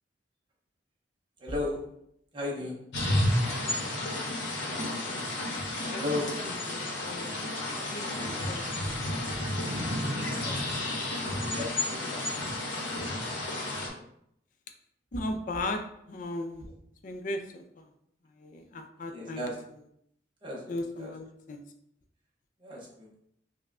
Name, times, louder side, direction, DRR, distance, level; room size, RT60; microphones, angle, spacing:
voice 1, 1.4-1.9 2.3-2.8 5.9-6.3 8.9-9.0 9.3-9.4 10.4-12.3 19.1-19.5 20.4-20.6 21.0-21.1 22.6-23.2, left 2 dB, 25° right, -4 dB, 0.7 m, -36 dB
sound 1, 2.9-13.9, left 1 dB, 75° left, 0.9 m, -31 dB
voice 2, 5.8-7.3 7.7-9.0 15.1-16.7 17.0-17.8 18.4-19.5 20.7-21.6, left 2 dB, 45° left, 6 dB, 0.4 m, -37 dB
5.2 x 2.2 x 2.4 m, 0.74 s
head